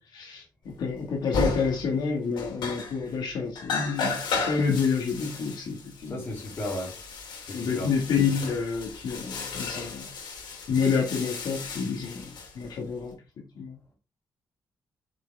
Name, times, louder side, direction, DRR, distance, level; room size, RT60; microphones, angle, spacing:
voice 1, 0.1-6.2 7.5-10.1 10.7-12.3 12.6-13.1 13.6-13.8, left 5 dB, 70° left, 2.0 m, -28 dB
sound 1, 0.9-1.0 1.3-2.0 2.3-3.2 3.6-13.1, left 4 dB, 85° left, 2.8 m, -34 dB
voice 2, 6.1-7.0 7.5-7.9, left 1 dB, 30° left, 2.9 m, -34 dB
6.6 x 6.3 x 3.5 m
wide cardioid pair, 175°, 7 cm